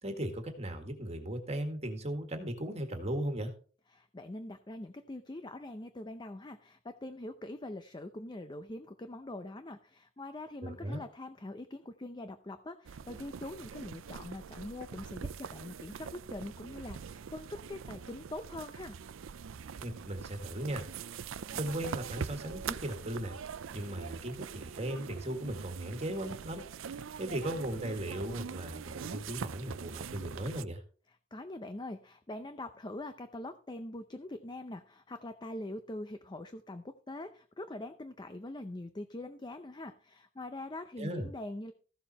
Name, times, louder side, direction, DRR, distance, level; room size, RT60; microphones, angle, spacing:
voice 1, 0.0-3.5 10.6-11.0 19.8-20.9 21.5-23.4 23.7-30.8 41.0-41.3, right 1 dB, 30° right, 5 dB, 1.8 m, -37 dB
voice 2, 3.9-19.0 31.3-41.7, left 1 dB, 20° left, 9 dB, 0.6 m, -43 dB
sound 1, 12.8-30.6, right 6 dB, 70° right, 0.5 m, -43 dB
14.5 x 7.2 x 4.2 m, 0.41 s
head